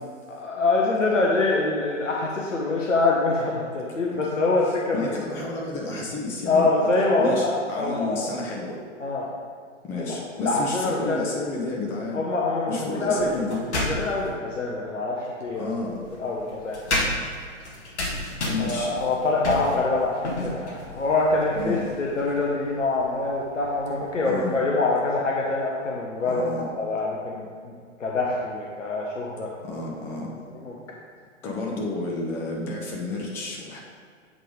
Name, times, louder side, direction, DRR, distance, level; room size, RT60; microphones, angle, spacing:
voice 1, 0.3-5.0 6.5-8.4 9.0-9.3 10.0-11.3 12.1-13.3 13.7-15.6 16.1-16.8 18.6-26.4 26.8-27.7 28.0-29.5 30.6-30.8, left 3 dB, 80° left, -3 dB, 1.1 m, -25 dB
voice 2, 4.9-6.7 7.2-8.8 9.8-12.2 12.7-13.6 15.5-16.0 18.5-19.0 21.6-21.8 24.2-24.6 26.2-26.7 29.6-30.3 31.4-33.8, left 3 dB, 5° left, -2 dB, 0.3 m, -31 dB
sound 1, 13.2-14.3 15.5-24.1, left 1 dB, 60° left, 1.6 m, -33 dB
7.4 x 3.9 x 4.9 m, 2.1 s
figure-of-eight pair, 110°, 37 cm